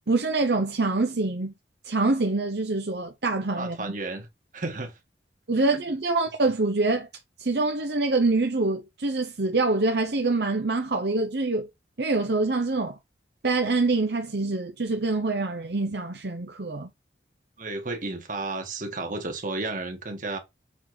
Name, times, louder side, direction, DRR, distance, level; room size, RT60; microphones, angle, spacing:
voice 1, 0.1-1.5 1.8-3.8 5.5-7.1 7.4-11.7 12.0-13.0 13.4-16.9, right 3 dB, 65° right, 0.9 m, -25 dB
voice 2, 3.6-4.3 4.5-5.0 5.6-5.8 17.6-20.4, right 2 dB, 45° right, 1.8 m, -32 dB
7.3 x 4.1 x 4.5 m
head